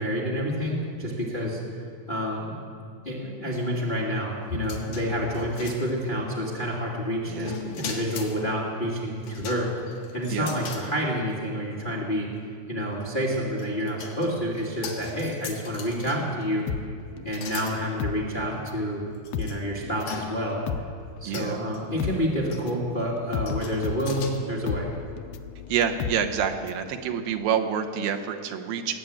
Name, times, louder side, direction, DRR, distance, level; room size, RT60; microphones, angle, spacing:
voice 1, 0.0-1.6 2.1-2.5 3.0-9.7 10.1-12.3 12.7-16.7 17.2-19.0 19.4-20.6 21.2-25.0, equal, 20° left, -4 dB, 1.4 m, -28 dB
sound 1, 4.5-6.3 7.4-8.4 9.2-10.9 11.3-11.4 12.9-16.4 17.3-17.8 18.5-18.6 19.2-19.6 20.1-20.6 21.3-21.8 22.5-22.8 23.5-24.3, left 4 dB, 65° left, 3.0 m, -39 dB
voice 2, 7.3-7.6 10.3-10.5 21.2-21.6 25.7-28.9, right 8 dB, 80° right, 5 dB, 2.6 m, -27 dB
sound 2, 16.7-18.9 19.2-26.9 27.2-27.3, left 7 dB, 80° left, 2.4 m, -34 dB
20.0 x 7.7 x 8.6 m, 2.3 s
omnidirectional pair, 4.2 m